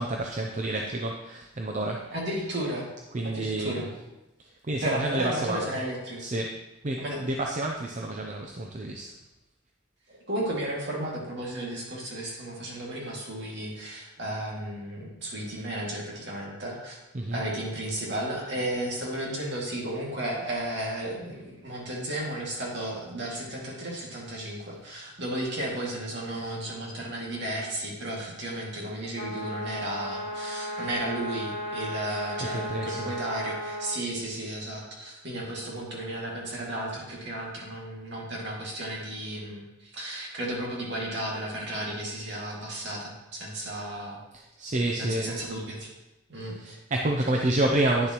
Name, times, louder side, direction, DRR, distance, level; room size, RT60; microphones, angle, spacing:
voice 1, 0.0-2.1 3.1-3.9 4.6-5.7 6.2-6.6 6.8-9.1 17.1-17.4 32.4-33.1 44.3-45.3 46.6-48.1, right 1 dB, 40° right, 1 dB, 0.6 m, -29 dB
voice 2, 2.1-2.9 3.2-3.9 4.8-6.2 7.0-7.2 10.1-17.0 17.3-44.2 44.9-45.9 46.3-46.8, right 1 dB, 60° right, -3 dB, 2.3 m, -34 dB
sound 1, 29.1-34.0, equal, 45° left, 1.2 m, -35 dB
9.8 x 6.9 x 3.1 m, 1.0 s
head